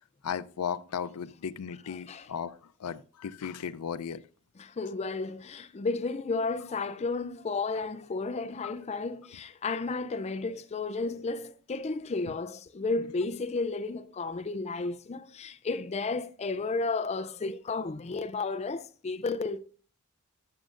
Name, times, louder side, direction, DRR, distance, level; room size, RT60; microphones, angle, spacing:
voice 1, 0.2-4.2 8.6-8.7, left 7 dB, 90° left, 0.5 m, -36 dB
voice 2, 1.9-2.3 4.6-19.6, left 3 dB, 30° left, 0.4 m, -33 dB
12.5 x 6.3 x 2.4 m
head